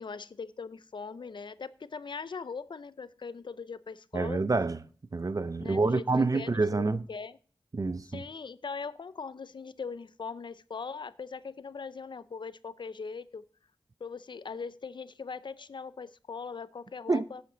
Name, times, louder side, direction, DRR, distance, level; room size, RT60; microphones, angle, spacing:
voice 1, 0.0-4.4 5.6-6.0 6.3-7.4 8.1-13.4 14.0-17.4, left 5 dB, 70° left, 0.5 m, -40 dB
voice 2, 4.1-4.8 5.1-7.0 7.7-8.2 17.1-17.2, right 3 dB, 45° right, 0.5 m, -27 dB
8.6 x 7.9 x 3.8 m
cardioid pair, 45°, 8 cm